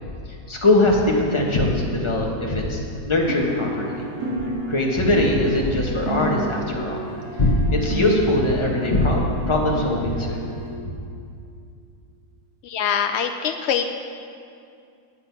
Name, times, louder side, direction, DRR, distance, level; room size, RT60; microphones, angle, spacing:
voice 1, 0.5-3.9 4.7-7.0 7.4-9.2 9.5-10.4, left 1 dB, 20° left, -2 dB, 1.3 m, -21 dB
sound 1, 3.3-10.7, right 1 dB, 60° right, 2.4 m, -30 dB
voice 2, 12.6-13.9, left 7 dB, 85° left, 6 dB, 0.5 m, -23 dB
9.9 x 8.2 x 5.8 m, 2.4 s
omnidirectional pair, 1.7 m